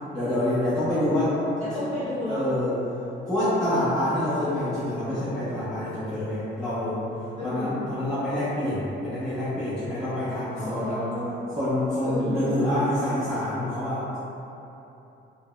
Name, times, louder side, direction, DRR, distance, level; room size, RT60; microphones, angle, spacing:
voice 1, 0.1-1.3 2.3-2.8 3.3-7.0 7.4-11.0 11.6-14.2, left 1 dB, 5° left, -13 dB, 0.7 m, -26 dB
voice 2, 1.6-2.5 7.4-7.8 10.6-11.4 12.0-12.4, left 1 dB, 30° left, -10 dB, 1.1 m, -31 dB
3.3 x 2.1 x 2.3 m, 3.0 s
cardioid pair, 90°, 20 cm